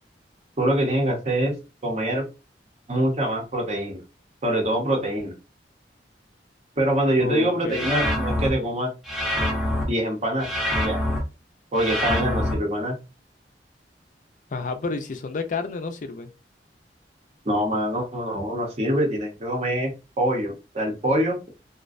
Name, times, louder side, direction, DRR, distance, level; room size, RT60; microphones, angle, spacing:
voice 1, 0.6-1.5 1.8-2.3 2.9-4.0 4.4-5.3 6.8-8.9 9.9-10.5 10.8-11.0 11.7-13.0 17.4-21.4, right 1 dB, 40° right, 0.7 m, -24 dB
voice 2, 7.2-7.9 14.5-16.3, left 4 dB, 45° left, 0.4 m, -30 dB
sound 1, 7.7-8.5 9.1-9.8 10.4-11.2 11.8-12.5, left 1 dB, ahead, 0.6 m, -25 dB
2.4 x 2.1 x 2.5 m
head